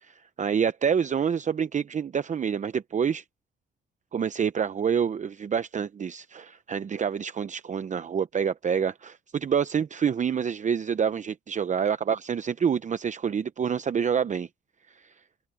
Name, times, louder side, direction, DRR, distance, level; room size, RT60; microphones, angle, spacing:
voice 1, 0.0-3.2 4.1-14.5 14.9-15.1, right 7 dB, 40° right, 0.7 m, -27 dB
cardioid pair, 90°, 20 cm